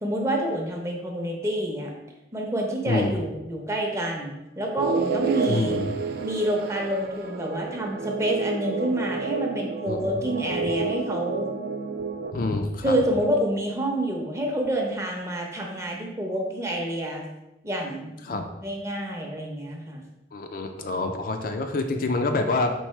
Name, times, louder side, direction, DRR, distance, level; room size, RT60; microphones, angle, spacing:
voice 1, 0.0-1.9 2.3-5.8 6.2-11.5 12.8-17.2 17.6-18.1 18.6-20.0, right 1 dB, 15° right, 0 dB, 0.7 m, -28 dB
sound 1, 4.8-12.3, right 5 dB, 55° right, 0.4 m, -30 dB
voice 2, 5.5-5.9 9.9-10.1 12.3-12.9 18.2-18.4 20.3-22.7, left 2 dB, 50° left, 5 dB, 0.4 m, -26 dB
4.6 x 3.6 x 3.1 m, 0.94 s
head